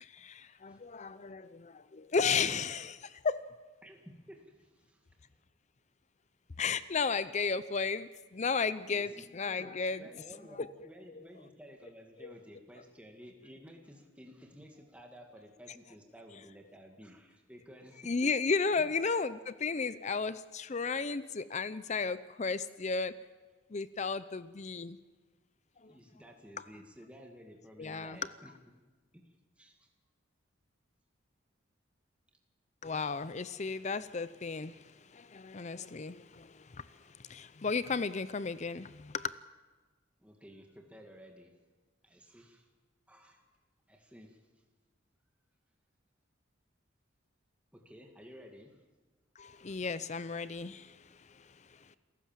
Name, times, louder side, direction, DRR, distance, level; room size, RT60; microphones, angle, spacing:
voice 1, 0.0-3.5 6.6-10.0 10.6-10.7 11.1-11.2 12.2-12.4 18.0-23.2 23.7-25.0 25.8-25.9 27.8-28.2 32.8-39.3 49.4-51.9, left 4 dB, 35° left, 15 dB, 0.6 m, -34 dB
voice 2, 3.8-5.1 8.9-9.3 9.6-18.3 18.8-18.9 20.1-20.3 25.9-28.6 29.1-29.9 40.2-41.5 42.0-42.7 43.1-43.4 43.9-44.4 47.7-48.8, equal, 5° right, 2 dB, 2.1 m, -54 dB
28.0 x 15.0 x 7.5 m, 1.3 s
head